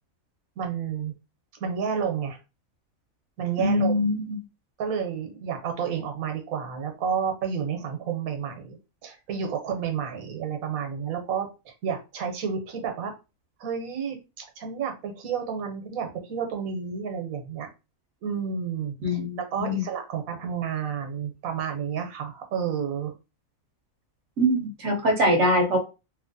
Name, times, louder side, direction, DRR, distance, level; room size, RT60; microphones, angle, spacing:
voice 1, 0.6-1.1 1.5-2.4 3.4-3.9 4.8-13.1 13.6-17.7 18.2-19.2 19.5-23.1, right 7 dB, 85° right, 4 dB, 1.2 m, -30 dB
voice 2, 3.6-4.4 19.0-19.8 24.4-25.8, equal, 65° right, 2 dB, 0.9 m, -23 dB
3.1 x 2.4 x 2.5 m, 0.29 s
omnidirectional pair, 1.4 m